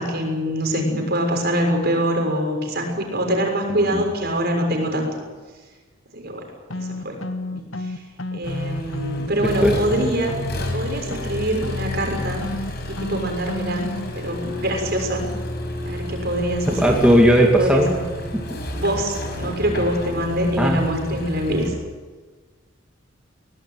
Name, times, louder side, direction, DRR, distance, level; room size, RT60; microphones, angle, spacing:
voice 1, 0.0-5.1 6.1-6.4 6.7-7.2 7.5-8.0 8.3-10.3 10.7-12.4 12.9-13.9 14.1-15.3 15.8-16.9 17.6-18.0 18.7-21.7, right 1 dB, 50° right, 3 dB, 6.6 m, -24 dB
sound 1, 6.7-14.1, left 1 dB, 80° left, 1.5 m, -31 dB
Accelerating revving vroom, 8.4-21.7, left 1 dB, 55° left, 5.7 m, -31 dB
voice 2, 9.4-9.7 16.7-17.9 18.3-18.6 20.6-20.8, equal, 5° right, 0 dB, 2.4 m, -17 dB
22.5 x 19.0 x 9.3 m, 1.4 s
head